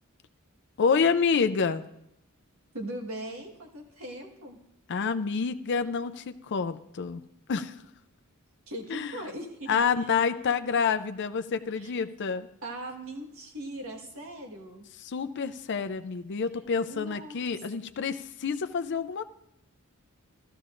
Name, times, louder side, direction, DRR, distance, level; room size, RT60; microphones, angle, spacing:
voice 1, 0.8-1.8 4.9-7.2 7.5-7.8 8.9-9.2 9.7-12.5 15.0-19.2, left 5 dB, 55° left, 10 dB, 0.5 m, -28 dB
voice 2, 2.7-4.6 8.7-10.1 11.8-11.9 12.6-14.9 16.8-17.4, right 1 dB, 75° right, 2 dB, 1.5 m, -40 dB
14.0 x 13.0 x 2.5 m, 0.80 s
head